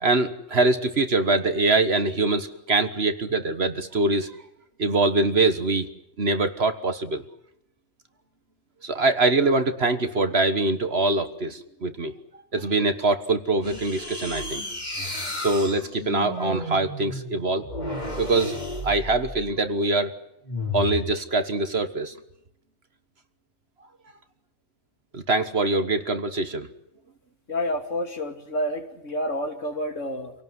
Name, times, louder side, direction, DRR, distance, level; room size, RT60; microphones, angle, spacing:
voice 1, 0.0-4.3 4.8-5.9 6.2-7.2 8.8-12.1 12.5-14.6 15.4-17.7 18.1-18.6 18.8-20.1 20.7-22.2 25.1-26.7, right 2 dB, 45° right, 9 dB, 1.6 m, -23 dB
sound 1, 13.6-19.6 20.4-21.1, left 1 dB, 30° left, 3.6 m, -33 dB
voice 2, 27.5-30.3, equal, 55° left, 5 dB, 2.9 m, -29 dB
27.0 x 18.0 x 9.6 m, 0.78 s
omnidirectional pair, 1.5 m